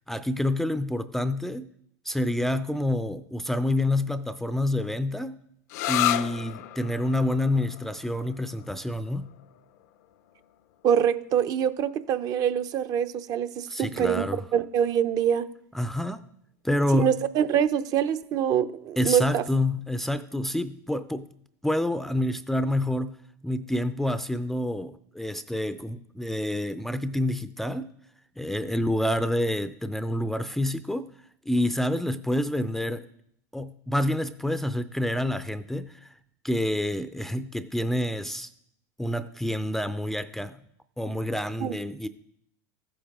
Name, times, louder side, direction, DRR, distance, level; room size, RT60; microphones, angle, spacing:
voice 1, 0.1-1.7 2.1-5.3 5.9-9.3 13.7-14.4 15.7-16.2 16.6-17.2 19.0-21.3 21.6-23.2 23.4-27.9 28.4-31.1 31.5-33.0 33.5-36.1 36.4-38.5 39.0-40.6 41.0-42.1, left 1 dB, 5° left, 0.4 m, -28 dB
sound 1, 5.7-13.1, left 14 dB, 70° left, 0.6 m, -34 dB
voice 2, 10.8-14.2 14.5-15.5 16.9-19.4 41.6-41.7, right 9 dB, 45° right, 0.6 m, -24 dB
14.0 x 8.6 x 3.6 m
supercardioid pair, 115°, 9 cm